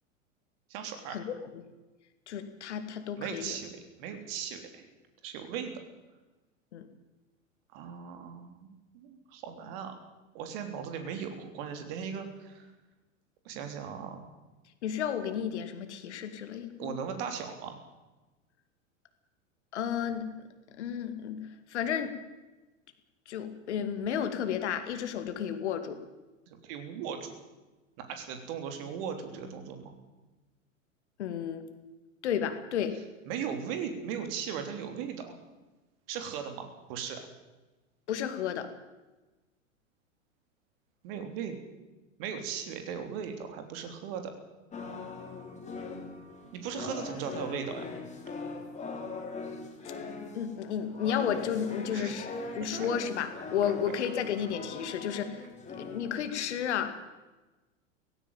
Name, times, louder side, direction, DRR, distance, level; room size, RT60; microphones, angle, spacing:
voice 1, 0.7-1.3 3.2-4.9 5.2-5.7 7.7-10.0 10.3-12.7 13.5-14.3 16.8-17.8 26.5-27.3 28.0-29.9 33.3-35.4 36.1-37.2 41.0-41.6 42.2-44.3 46.5-47.9 51.9-52.2 52.6-52.9 53.9-54.0, right 7 dB, 45° right, 7 dB, 3.4 m, -38 dB
voice 2, 2.3-3.5 6.7-6.9 14.8-17.1 19.7-20.3 20.8-21.4 21.7-22.1 23.3-26.0 31.2-31.6 32.2-32.9 38.1-38.7 50.3-55.4 55.8-56.9, left 8 dB, 55° left, 9 dB, 2.3 m, -32 dB
sound 1, 44.7-56.8, left 4 dB, 15° left, 3.8 m, -41 dB
17.5 x 16.5 x 9.1 m, 1.1 s
figure-of-eight pair, 90°, 40 cm